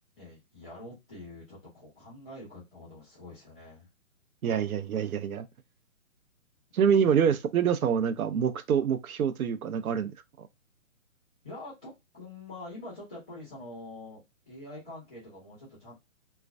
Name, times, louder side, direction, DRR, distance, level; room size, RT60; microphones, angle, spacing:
voice 1, 0.2-3.9 6.9-7.3 11.4-14.2 14.5-15.9, left 2 dB, 5° left, 0.4 m, -45 dB
voice 2, 4.4-5.5 6.7-10.1 10.4-10.5, right 7 dB, 90° right, 0.5 m, -26 dB
2.3 x 2.2 x 2.4 m
hypercardioid pair, 155°, 42 cm